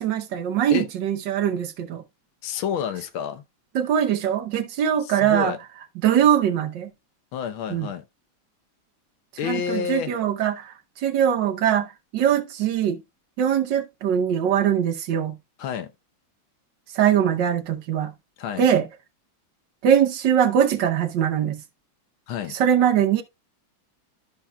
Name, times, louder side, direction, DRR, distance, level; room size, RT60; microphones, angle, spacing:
voice 1, 0.0-2.0 3.7-5.5 6.0-6.9 7.7-7.9 9.4-13.0 13.4-15.3 16.9-18.1 18.6-18.9 19.8-21.6 22.5-23.2, right 9 dB, 70° right, 1.4 m, -22 dB
voice 2, 2.4-3.4 5.0-5.6 7.3-8.0 9.4-10.1 15.6-15.9 18.4-18.7 22.3-22.6, left 8 dB, 80° left, 1.7 m, -29 dB
12.5 x 5.8 x 2.2 m
omnidirectional pair, 2.2 m